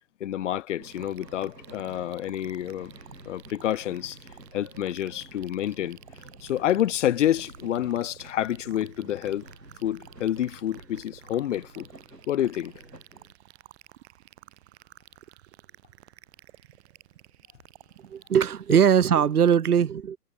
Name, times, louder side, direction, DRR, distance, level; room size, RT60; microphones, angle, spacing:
voice 1, 0.2-2.9 3.2-4.2 4.5-6.0 6.4-9.4 9.8-11.9 12.3-12.7, left 11 dB, 50° left, 1.3 m, -28 dB
sound 1, 0.8-13.3, right 1 dB, 90° right, 6.3 m, -49 dB
sound 2, 0.9-19.6, right 15 dB, 40° right, 3.9 m, -53 dB
voice 2, 18.0-20.2, right 8 dB, 70° right, 1.1 m, -21 dB
figure-of-eight pair, 115°, 48 cm